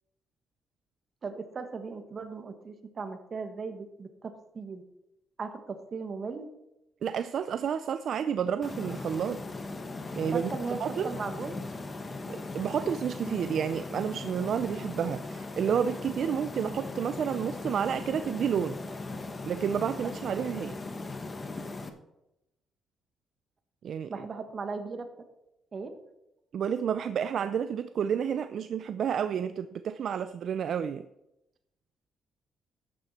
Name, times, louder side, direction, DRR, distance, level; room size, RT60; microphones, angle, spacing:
voice 1, 1.2-4.8 5.4-6.5 10.3-11.5 20.0-20.1 24.1-25.1 25.7-25.9, right 4 dB, 40° right, 7 dB, 1.6 m, -37 dB
voice 2, 7.0-9.4 10.2-11.1 12.3-18.8 19.4-20.8 23.8-24.1 26.5-31.1, right 8 dB, 60° right, 12 dB, 0.5 m, -30 dB
sound 1, 8.6-21.9, left 3 dB, 30° left, 1.3 m, -38 dB
12.5 x 9.2 x 4.3 m, 0.90 s
cardioid pair, 90°, 0 cm